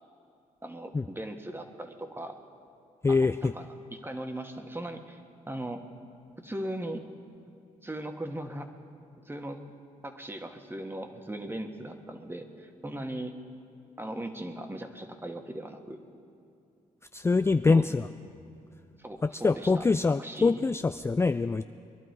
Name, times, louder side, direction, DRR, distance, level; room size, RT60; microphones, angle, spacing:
voice 1, 0.6-2.4 3.1-5.2 5.5-5.8 6.4-7.1 7.8-8.7 9.2-9.6 10.0-13.4 14.0-16.0 17.7-17.8 19.0-19.8 20.2-20.6, right 1 dB, 15° right, 5 dB, 1.5 m, -38 dB
voice 2, 3.0-3.5 17.1-18.1 19.4-21.6, left 4 dB, 20° left, 9 dB, 0.3 m, -24 dB
22.0 x 11.5 x 4.7 m, 2.6 s
cardioid pair, 65°, 15 cm